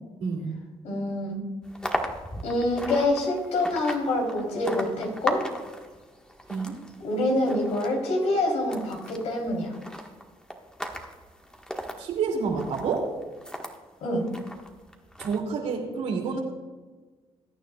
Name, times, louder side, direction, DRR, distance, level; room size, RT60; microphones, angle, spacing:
voice 1, 0.8-1.4 2.4-5.4 7.0-9.7 14.0-14.2, left 1 dB, 80° left, 0 dB, 3.5 m, -26 dB
sound 1, 1.6-13.8 14.3-15.4, equal, 5° left, 1.5 m, -38 dB
voice 2, 6.5-6.8 12.0-13.1 15.2-16.4, right 5 dB, 80° right, 0 dB, 2.6 m, -28 dB
21.0 x 9.3 x 2.3 m, 1.3 s
cardioid pair, 85°, 11 cm